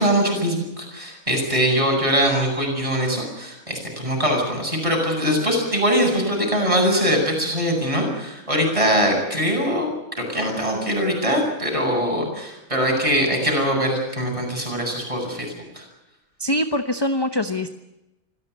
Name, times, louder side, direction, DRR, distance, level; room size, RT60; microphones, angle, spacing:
voice 1, 0.0-15.8, equal, 20° right, 1 dB, 8.2 m, -22 dB
voice 2, 16.4-17.7, left 1 dB, 20° left, 9 dB, 0.9 m, -23 dB
26.0 x 16.0 x 9.5 m, 0.93 s
omnidirectional pair, 1.5 m